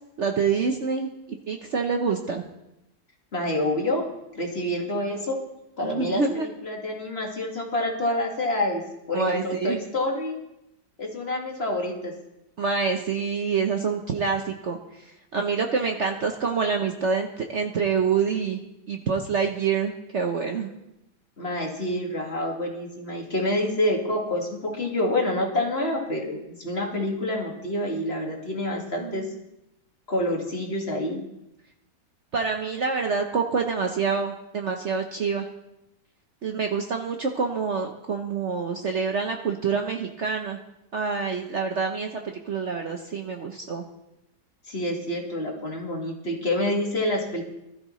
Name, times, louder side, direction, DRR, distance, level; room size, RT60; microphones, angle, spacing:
voice 1, 0.2-1.1 1.5-2.5 5.8-6.5 9.1-9.8 12.6-14.8 15.3-18.6 18.9-20.7 29.0-29.3 32.3-35.5 36.4-40.6 40.9-42.2 42.5-43.8, right 5 dB, 50° right, 3 dB, 1.1 m, -26 dB
voice 2, 3.3-4.1 4.3-5.4 5.8-8.8 9.1-10.4 11.0-12.1 21.4-29.2 30.1-31.2 44.7-47.4, left 1 dB, 35° left, 0 dB, 2.3 m, -27 dB
19.5 x 12.5 x 3.2 m, 0.88 s
omnidirectional pair, 1.8 m